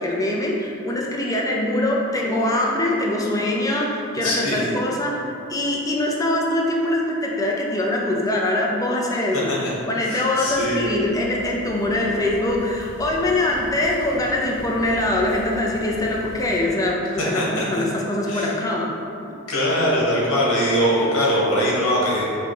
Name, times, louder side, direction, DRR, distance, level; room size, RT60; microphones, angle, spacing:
voice 1, 0.0-9.5 9.9-19.0, left 1 dB, 15° left, -2 dB, 0.5 m, -23 dB
voice 2, 4.2-4.7 10.0-10.8 17.3-17.8 18.3-18.5 19.5-22.2, equal, 90° left, -5 dB, 1.3 m, -22 dB
sound 1, 10.4-16.6, right 1 dB, 35° right, 0.6 m, -41 dB
4.8 x 2.3 x 4.8 m, 2.6 s
head